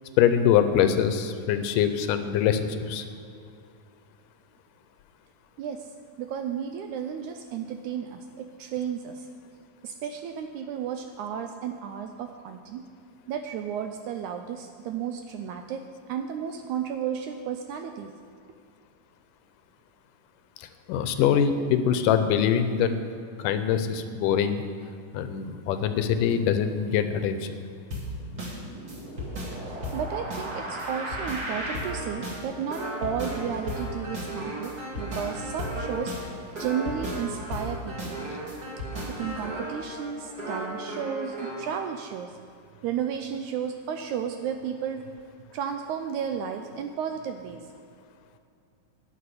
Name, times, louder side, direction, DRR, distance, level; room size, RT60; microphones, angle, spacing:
voice 1, 0.2-3.0 20.9-23.0 23.4-24.6 25.1-27.4, left 8 dB, 80° left, 9 dB, 2.2 m, -23 dB
voice 2, 5.6-5.9 6.2-9.3 9.8-12.9 13.3-18.1 29.7-36.1 36.5-38.2 39.1-42.3 42.8-45.0 45.5-47.7, right 8 dB, 80° right, 6 dB, 1.8 m, -33 dB
sound 1, 27.9-41.7, equal, 35° right, 2.2 m, -34 dB
11.0 x 6.6 x 9.4 m, 2.5 s
omnidirectional pair, 3.9 m